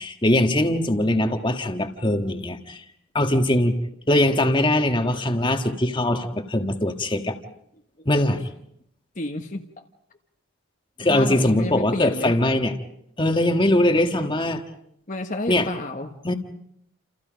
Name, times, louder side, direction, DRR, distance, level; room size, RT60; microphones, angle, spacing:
voice 1, 0.0-2.8 3.1-3.7 4.1-7.4 8.0-8.4 11.0-12.7 13.2-14.6 15.5-15.7 16.2-16.3, left 1 dB, 20° left, 6 dB, 1.5 m, -21 dB
voice 2, 9.2-9.6 11.0-12.4 15.1-16.2, left 2 dB, 35° left, 3 dB, 1.3 m, -30 dB
29.5 x 28.5 x 5.2 m, 0.75 s
head